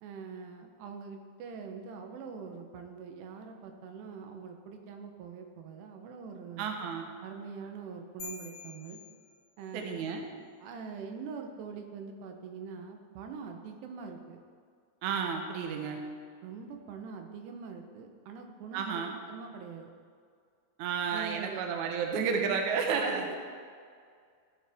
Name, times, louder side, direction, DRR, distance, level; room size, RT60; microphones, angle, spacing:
voice 1, 0.0-6.7 7.2-9.0 9.6-10.1 10.6-14.4 16.4-19.9 21.1-21.6 23.0-23.3, right 5 dB, 90° right, 4 dB, 3.0 m, -43 dB
voice 2, 6.6-7.1 9.7-10.3 15.0-16.0 18.7-19.1 20.8-23.4, right 6 dB, 70° right, 3 dB, 1.8 m, -31 dB
sound 1, 8.2-9.9, left 5 dB, 75° left, 3.1 m, -47 dB
14.5 x 7.7 x 3.5 m, 2.1 s
omnidirectional pair, 4.6 m